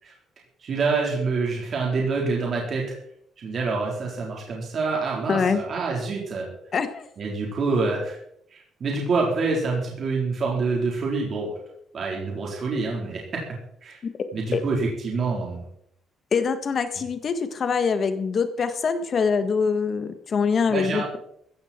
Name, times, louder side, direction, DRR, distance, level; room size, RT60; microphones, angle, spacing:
voice 1, 0.6-2.9 3.4-6.5 7.2-8.2 8.5-11.5 11.9-13.2 13.8-14.0 14.3-15.6 20.7-21.1, right 4 dB, 45° right, -2 dB, 4.1 m, -26 dB
voice 2, 5.3-5.6 6.7-7.0 14.5-14.6 16.3-21.0, left 5 dB, 40° left, 9 dB, 1.6 m, -24 dB
15.5 x 14.0 x 4.5 m, 0.72 s
cardioid pair, 140°, 0 cm